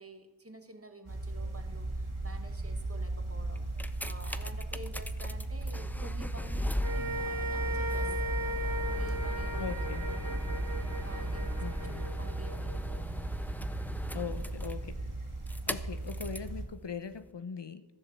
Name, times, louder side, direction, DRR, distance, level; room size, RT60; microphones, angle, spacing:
voice 1, 0.0-3.7 4.0-8.4 9.0-9.7 10.0-10.4 11.0-12.7 14.1-14.2, right 1 dB, 30° right, 6 dB, 1.6 m, -50 dB
sound 1, 1.1-16.6, right 2 dB, 75° right, 2.3 m, -37 dB
sound 2, 3.6-16.5 17.3-17.4, left 1 dB, 5° left, 0.6 m, -38 dB
sound 3, 6.8-13.2, right 1 dB, 45° right, 2.3 m, -38 dB
voice 2, 9.6-10.1 11.6-12.1 14.1-15.0 15.7-17.9, left 6 dB, 60° left, 11 dB, 0.9 m, -40 dB
14.0 x 7.2 x 7.2 m, 1.1 s
wide cardioid pair, 45°, 49 cm